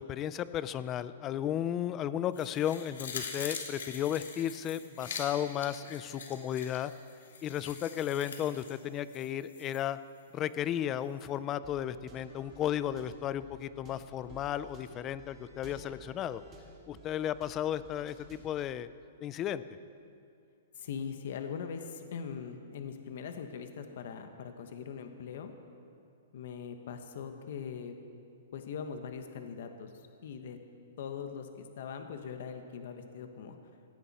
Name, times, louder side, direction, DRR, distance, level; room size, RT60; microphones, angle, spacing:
voice 1, 0.0-6.9 7.4-10.0 10.3-16.4 16.9-18.9 19.2-19.6, left 10 dB, 20° left, 15 dB, 0.4 m, -34 dB
sound 1, 2.3-9.8 10.2-10.3, left 5 dB, 85° left, 2.8 m, -44 dB
sound 2, 11.6-18.6, right 2 dB, 20° right, 2.4 m, -54 dB
voice 2, 20.7-25.5 26.3-28.0 28.5-29.9 30.2-30.6 31.0-33.6, left 6 dB, 55° left, 7 dB, 1.2 m, -41 dB
17.0 x 16.5 x 4.2 m, 2.7 s
hypercardioid pair, 165°, 0 cm